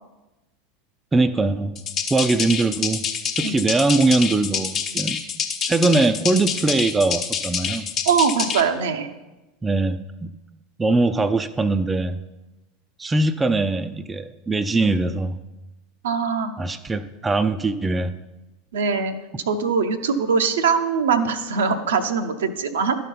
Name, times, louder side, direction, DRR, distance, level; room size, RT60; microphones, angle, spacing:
voice 1, 1.1-1.8 2.1-3.0 3.4-5.2 5.6-7.9 9.6-10.3 10.8-12.2 13.0-15.4 16.6-18.1, right 3 dB, 15° right, 10 dB, 0.5 m, -21 dB
sound 1, 1.8-8.6, left 7 dB, 40° left, 1.0 m, -27 dB
voice 2, 8.1-9.1 16.0-16.5 18.7-19.1 19.5-23.0, right 5 dB, 75° right, 7 dB, 0.7 m, -22 dB
12.0 x 4.3 x 5.4 m, 1.1 s
figure-of-eight pair, 80°, 0 cm